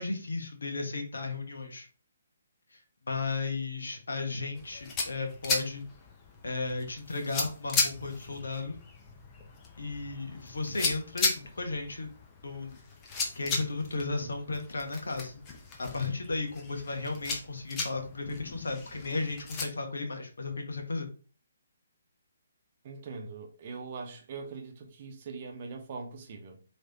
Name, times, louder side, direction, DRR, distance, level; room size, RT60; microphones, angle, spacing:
voice 1, 0.0-1.9 2.7-2.8 3.1-5.9 6.4-8.8 9.8-12.1 12.4-12.8 13.3-15.4 15.8-21.1, left 3 dB, 65° left, 1.1 m, -34 dB
sound 1, 4.5-19.7, left 3 dB, 20° left, 0.9 m, -36 dB
voice 2, 22.8-26.6, right 4 dB, 40° right, 0.9 m, -42 dB
4.8 x 3.3 x 2.8 m
figure-of-eight pair, 135°, 0 cm